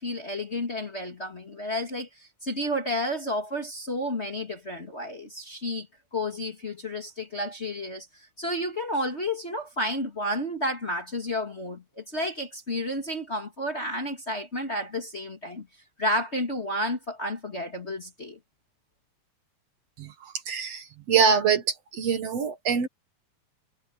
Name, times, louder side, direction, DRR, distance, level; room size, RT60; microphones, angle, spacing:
voice 1, 0.0-5.9 6.1-15.7 16.0-18.4, left 1 dB, 25° left, 1.9 m, -31 dB
voice 2, 20.0-22.9, right 6 dB, 60° right, 2.4 m, -25 dB
omnidirectional pair, 3.4 m